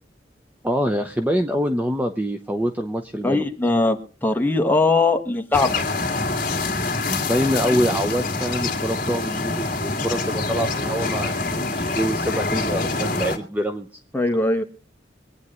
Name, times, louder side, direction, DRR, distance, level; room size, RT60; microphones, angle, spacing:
voice 1, 0.6-3.4 7.1-13.9, equal, 10° right, 5 dB, 0.8 m, -25 dB
voice 2, 3.2-4.0 4.2-5.8 14.1-14.6, left 2 dB, 10° left, 4 dB, 1.5 m, -20 dB
sound 1, 5.5-13.4, left 3 dB, 45° left, 2.3 m, -25 dB
24.0 x 9.6 x 3.1 m, 0.40 s
head